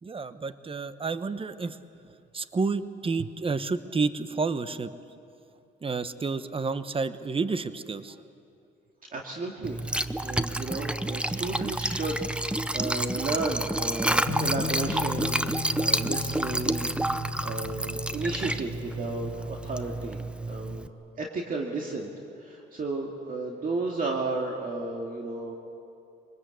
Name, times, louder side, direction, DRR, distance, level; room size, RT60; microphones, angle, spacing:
voice 1, 0.0-1.8 2.0-4.9 5.8-8.2, right 4 dB, 25° right, 12 dB, 1.0 m, -30 dB
voice 2, 9.1-9.8 10.2-15.5 15.8-20.2 20.5-20.9 21.1-22.1 22.4-25.5, right 3 dB, 45° right, 0 dB, 2.2 m, -33 dB
Liquid, 9.6-20.9, right 1 dB, 5° right, 0.7 m, -29 dB
sound 1, 14.3-19.8, left 8 dB, 65° left, 1.0 m, -38 dB
24.0 x 20.0 x 8.3 m, 2.6 s
cardioid pair, 90°, 20 cm